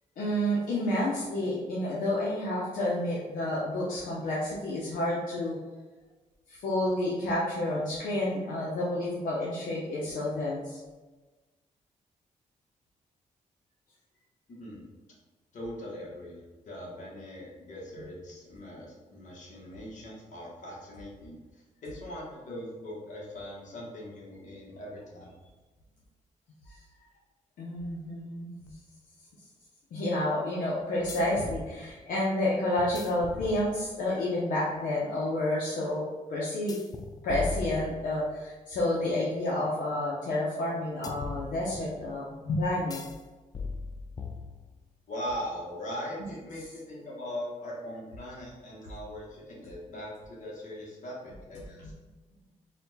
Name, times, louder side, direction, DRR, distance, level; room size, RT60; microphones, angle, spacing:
voice 1, 0.2-5.6 6.5-10.8 27.6-28.7 29.9-36.0 36.3-36.8 37.2-43.0, left 1 dB, 90° left, -6 dB, 0.8 m, -30 dB
voice 2, 14.5-14.8 15.5-21.4 21.8-25.3 45.1-51.9, equal, 65° left, -4 dB, 1.4 m, -40 dB
sound 1, 28.7-28.8 31.1-31.7 32.8-34.1 36.7-38.4 41.0-42.0 42.9-43.2 43.5-44.9, left 4 dB, 30° left, 0.3 m, -39 dB
4.2 x 2.4 x 4.0 m, 1.2 s
cardioid pair, 115°, 14 cm